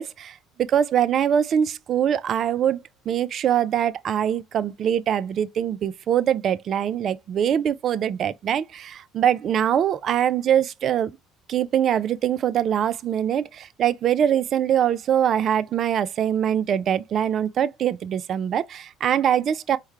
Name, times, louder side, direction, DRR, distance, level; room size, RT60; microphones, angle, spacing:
voice 1, 0.0-11.1 11.5-19.8, right 9 dB, 50° right, 0.4 m, -23 dB
4.5 x 2.2 x 3.1 m
hypercardioid pair, 65°, 0 cm